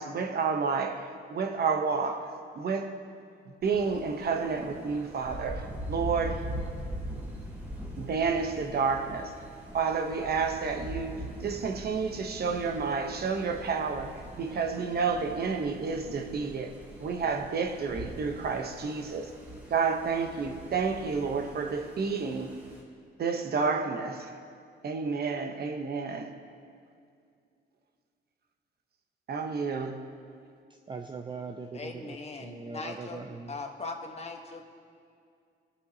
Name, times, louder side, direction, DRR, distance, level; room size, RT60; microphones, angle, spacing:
voice 1, 0.0-2.3 2.6-2.9 3.6-6.5 8.0-9.3 9.7-14.1 14.4-16.7 17.0-19.3 19.7-22.6 23.2-24.3 24.8-26.3 29.3-30.0, right 5 dB, 55° right, 4 dB, 1.0 m, -30 dB
Thunder, 3.6-22.8, right 1 dB, 10° right, 2.7 m, -42 dB
voice 2, 30.9-33.5, right 4 dB, 25° right, 4 dB, 0.5 m, -41 dB
voice 3, 31.7-34.6, left 3 dB, 30° left, 3 dB, 1.3 m, -40 dB
21.0 x 8.2 x 2.9 m, 2.3 s
cardioid pair, 90°, 20 cm